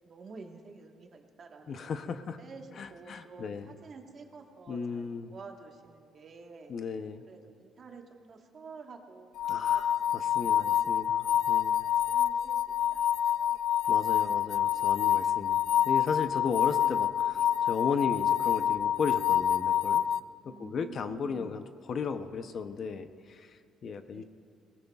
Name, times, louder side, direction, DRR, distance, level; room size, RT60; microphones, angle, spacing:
voice 1, 0.0-1.8 2.2-6.7 7.3-12.6 12.9-13.5 20.4-21.5 24.1-24.2, right 4 dB, 40° right, 3 dB, 1.4 m, -50 dB
voice 2, 1.7-2.4 2.7-3.8 4.7-5.3 6.7-7.2 9.5-11.9 13.9-20.0 20.4-24.2, left 5 dB, 45° left, 9 dB, 0.6 m, -35 dB
sound 1, 9.4-20.2, left 10 dB, 75° left, 0.3 m, -27 dB
22.5 x 19.0 x 2.4 m, 2.2 s
cardioid pair, 135°, 0 cm